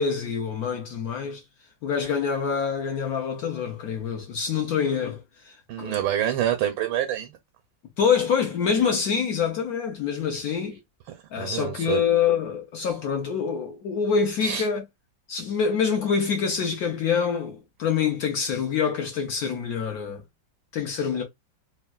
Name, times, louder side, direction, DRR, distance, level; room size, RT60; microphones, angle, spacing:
voice 1, 0.0-1.4 1.8-6.0 8.0-10.8 11.3-14.8 15.3-20.2 20.7-21.2, left 6 dB, 70° left, 0.9 m, -26 dB
voice 2, 5.7-7.4 11.4-12.0 14.4-14.7, right 11 dB, 85° right, 1.3 m, -26 dB
3.5 x 2.2 x 2.2 m
omnidirectional pair, 2.1 m